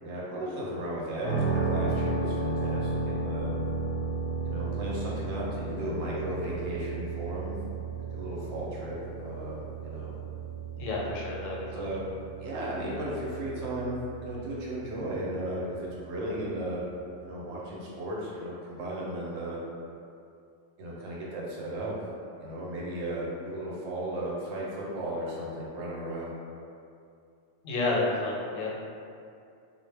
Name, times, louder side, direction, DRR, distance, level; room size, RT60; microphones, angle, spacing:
voice 1, 0.0-3.5 4.4-7.6 8.0-10.2 11.7-12.0 12.4-16.8 17.2-19.6 20.8-21.9 22.4-26.3, right 1 dB, 70° right, -5 dB, 0.8 m, -35 dB
sound 1, 1.2-17.1, right 3 dB, 65° left, 0.7 m, -34 dB
voice 2, 10.8-11.7 27.6-28.8, left 2 dB, 90° left, -3 dB, 0.9 m, -30 dB
2.1 x 2.0 x 3.2 m, 2.5 s
omnidirectional pair, 1.3 m